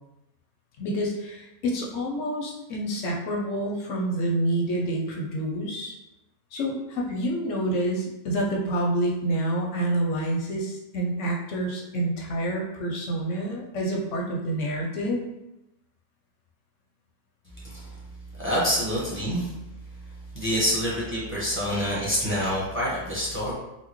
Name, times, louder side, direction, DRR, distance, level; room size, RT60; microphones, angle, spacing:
voice 1, 0.8-5.9 6.5-15.2, right 1 dB, 65° left, -1 dB, 0.8 m, -28 dB
voice 2, 17.6-17.9 18.4-19.5 20.3-23.5, equal, 10° right, -7 dB, 0.8 m, -27 dB
4.3 x 2.1 x 3.0 m, 0.93 s
omnidirectional pair, 1.7 m